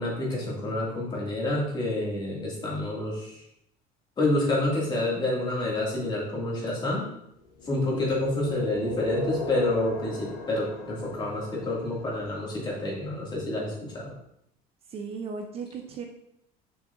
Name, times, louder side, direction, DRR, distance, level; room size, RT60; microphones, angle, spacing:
voice 1, 0.0-3.4 4.2-7.0 7.7-14.1, left 2 dB, 25° left, -4 dB, 2.2 m, -28 dB
sound 1, 7.6-12.5, left 1 dB, 60° left, 1.7 m, -36 dB
voice 2, 7.7-8.0 14.9-16.0, right 5 dB, 35° right, 3 dB, 0.6 m, -36 dB
7.0 x 6.5 x 2.6 m, 0.77 s
cardioid pair, 155°, 17 cm